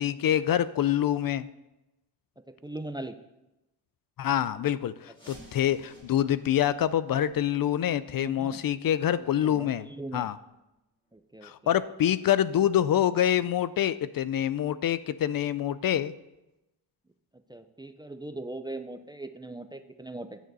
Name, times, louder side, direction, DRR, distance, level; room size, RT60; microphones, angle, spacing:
voice 1, 0.0-1.5 4.2-9.9 10.1-10.4 11.4-16.1, left 11 dB, 55° left, 15 dB, 0.5 m, -26 dB
voice 2, 2.6-3.2 8.1-8.6 9.2-10.3 11.1-11.5 17.5-20.4, right 2 dB, 10° right, 9 dB, 0.4 m, -40 dB
sound 1, 5.1-10.7 11.0-11.1 11.7-11.8 12.4-12.5 13.0-13.1, right 1 dB, 10° left, 3.8 m, -57 dB
15.5 x 9.1 x 4.0 m, 0.97 s
wide cardioid pair, 160°, 42 cm